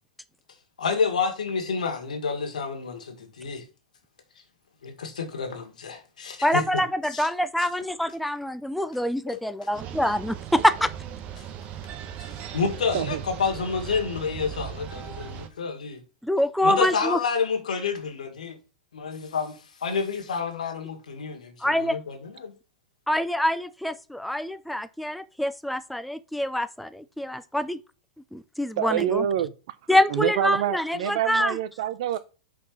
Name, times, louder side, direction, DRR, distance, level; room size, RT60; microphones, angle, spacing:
voice 1, 0.8-3.6 4.8-6.8 7.1-7.3 7.6-7.7 9.3-9.4 11.4-11.5 12.2-16.0 16.6-18.6 18.9-22.5, left 5 dB, 90° left, 1.8 m, -29 dB
voice 2, 6.4-10.9 16.2-17.2 21.6-22.0 23.1-27.8 28.3-29.2 29.9-31.6, left 1 dB, ahead, 0.4 m, -25 dB
sound 1, 9.7-15.5, right 9 dB, 35° right, 1.1 m, -38 dB
voice 3, 28.8-29.5 30.1-32.2, right 11 dB, 60° right, 0.7 m, -26 dB
5.4 x 4.3 x 6.1 m
hypercardioid pair, 125°, 4 cm